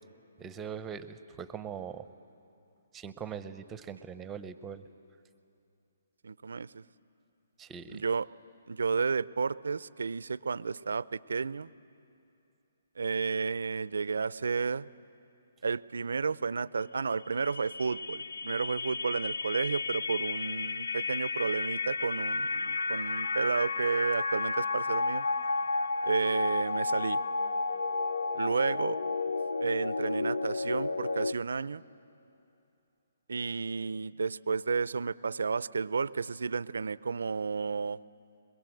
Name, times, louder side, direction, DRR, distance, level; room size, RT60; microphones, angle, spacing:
voice 1, 0.4-2.1 2.9-4.8 7.6-8.0, right 7 dB, 15° right, 12 dB, 0.8 m, -41 dB
voice 2, 6.2-6.8 7.9-8.3 8.7-11.7 13.0-14.9 15.6-25.3 26.0-27.2 28.3-29.0 29.6-31.8 33.3-38.0, right 5 dB, 75° right, 19 dB, 0.5 m, -32 dB
sound 1, 17.1-31.3, left 3 dB, 80° left, 0.7 m, -32 dB
24.5 x 22.0 x 7.8 m, 2.7 s
hypercardioid pair, 140°, 0 cm